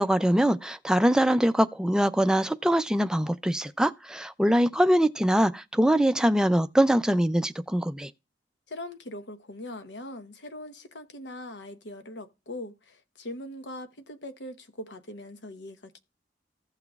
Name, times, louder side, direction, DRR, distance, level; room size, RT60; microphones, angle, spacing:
voice 1, 0.0-8.1, equal, 5° right, 0.4 m, -23 dB
voice 2, 8.7-16.0, left 1 dB, 75° left, 1.0 m, -41 dB
16.0 x 5.8 x 2.3 m
head